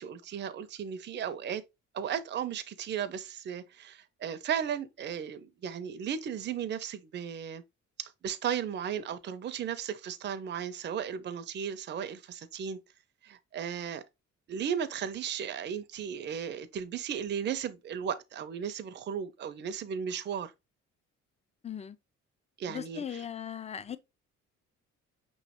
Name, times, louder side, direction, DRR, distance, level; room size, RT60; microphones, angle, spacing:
voice 1, 0.0-1.6 1.9-7.6 8.0-12.8 13.2-14.0 14.5-20.5 22.6-23.2, right 8 dB, 35° right, 0.5 m, -35 dB
voice 2, 21.6-22.0 22.7-24.0, left 8 dB, 25° left, 0.4 m, -38 dB
5.3 x 3.1 x 2.8 m
cardioid pair, 90°, 30 cm